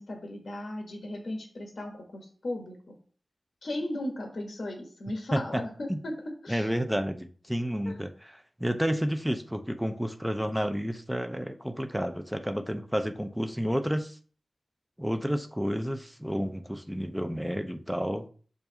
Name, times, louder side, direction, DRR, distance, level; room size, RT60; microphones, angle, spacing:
voice 1, 0.0-3.0 3.6-6.1 6.4-6.7 7.8-8.0, left 1 dB, 65° left, 1.2 m, -36 dB
voice 2, 5.3-5.6 5.9-6.0 6.5-14.2 15.0-18.3, equal, 5° right, 0.7 m, -30 dB
7.1 x 2.7 x 5.1 m
wide cardioid pair, 85°, 0 cm